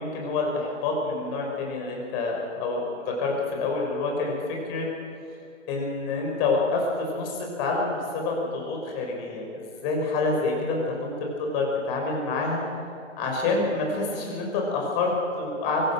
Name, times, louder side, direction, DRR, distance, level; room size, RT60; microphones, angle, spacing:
voice 1, 0.0-4.3 4.7-4.9 5.7-11.1 11.4-12.6 13.2-15.9, left 3 dB, 35° left, 0 dB, 6.0 m, -27 dB
24.0 x 17.0 x 6.4 m, 2.5 s
figure-of-eight pair, 125°, 37 cm